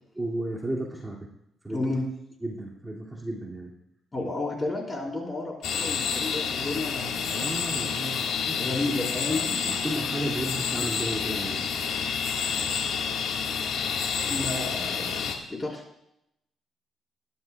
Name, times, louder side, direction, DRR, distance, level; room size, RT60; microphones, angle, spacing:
voice 1, 0.2-1.2 1.6-1.9 2.4-3.7 7.3-8.8 9.3-11.7, right 1 dB, 15° right, -3 dB, 2.4 m, -34 dB
voice 2, 1.7-2.0 4.1-7.5 8.6-9.5 14.2-15.8, left 2 dB, 25° left, -1 dB, 4.3 m, -32 dB
sound 1, 5.6-15.4, left 6 dB, 80° left, 1.7 m, -29 dB
20.5 x 11.5 x 2.3 m, 0.80 s
cardioid pair, 90°, 0 cm